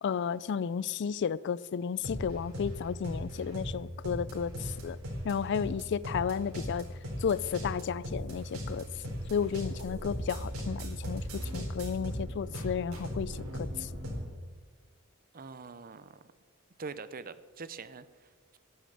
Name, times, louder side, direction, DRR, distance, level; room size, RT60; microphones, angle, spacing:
voice 1, 0.0-5.0 5.2-6.9 7.2-8.9 9.3-13.9, left 7 dB, 55° left, 0.4 m, -33 dB
sound 1, 2.0-14.3, equal, 90° right, 4.0 m, -38 dB
voice 2, 15.3-16.3 16.8-18.6, right 4 dB, 40° right, 0.7 m, -44 dB
11.0 x 10.5 x 7.9 m
head